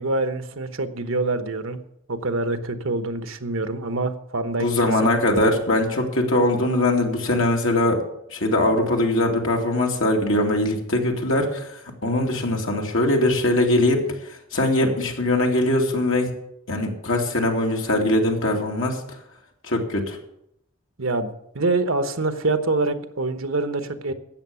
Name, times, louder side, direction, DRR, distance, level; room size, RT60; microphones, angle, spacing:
voice 1, 0.0-1.8 2.1-4.7 21.0-21.3 21.5-24.1, right 2 dB, 75° right, 9 dB, 1.1 m, -25 dB
voice 2, 4.6-8.0 8.3-14.0 14.3-16.3 16.7-19.0 19.6-20.2, left 1 dB, 70° left, 1 dB, 2.6 m, -21 dB
13.5 x 8.7 x 7.0 m, 0.77 s
head